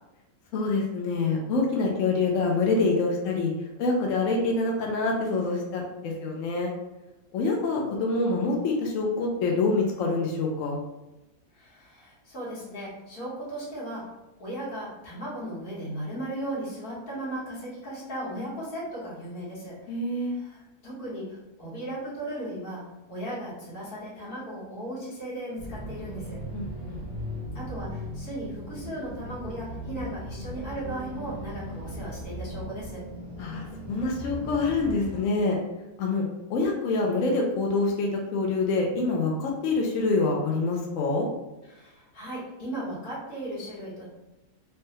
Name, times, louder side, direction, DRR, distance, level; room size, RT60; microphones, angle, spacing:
voice 1, 0.5-3.5 3.8-6.7 7.3-10.8 19.9-20.4 26.5-27.0 33.4-35.6 36.0-36.2 36.5-41.3, left 3 dB, 70° left, 0 dB, 0.9 m, -26 dB
voice 2, 11.5-14.0 14.4-20.0 20.3-22.8 23.1-26.4 27.6-33.0 41.7-44.0, right 1 dB, 85° left, -7 dB, 1.7 m, -36 dB
sound 1, 25.6-35.2, equal, 35° left, 0.9 m, -38 dB
3.3 x 2.1 x 2.8 m, 1.0 s
omnidirectional pair, 1.5 m